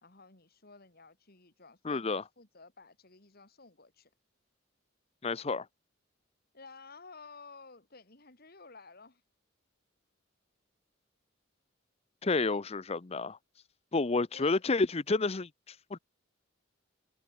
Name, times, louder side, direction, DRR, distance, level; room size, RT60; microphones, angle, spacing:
voice 1, 0.0-4.1 6.5-9.2 14.3-14.6, left 4 dB, 50° left, 3.1 m, -53 dB
voice 2, 1.8-2.2 5.2-5.7 12.2-13.4 13.9-16.0, left 3 dB, 30° left, 0.6 m, -30 dB
head